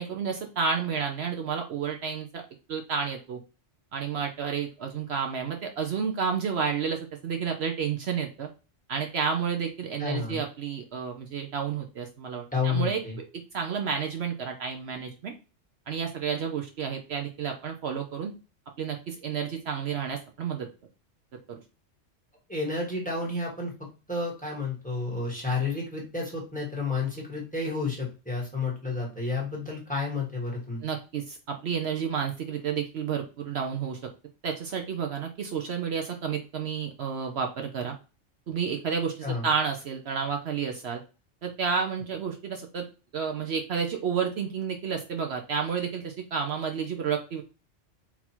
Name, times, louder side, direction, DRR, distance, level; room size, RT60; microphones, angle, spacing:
voice 1, 0.0-2.4 2.7-3.4 3.9-8.5 8.9-13.2 13.5-15.3 15.9-18.3 18.8-20.7 21.5-21.6 30.8-34.0 34.4-38.0 38.5-41.0 41.4-42.9 43.1-47.4, right 6 dB, 65° right, 3 dB, 0.9 m, -31 dB
voice 2, 10.0-10.4 12.5-13.2 22.5-23.7 24.1-30.8 39.2-39.5, left 3 dB, 5° left, -2 dB, 1.4 m, -31 dB
4.0 x 2.7 x 4.4 m, 0.32 s
omnidirectional pair, 1.2 m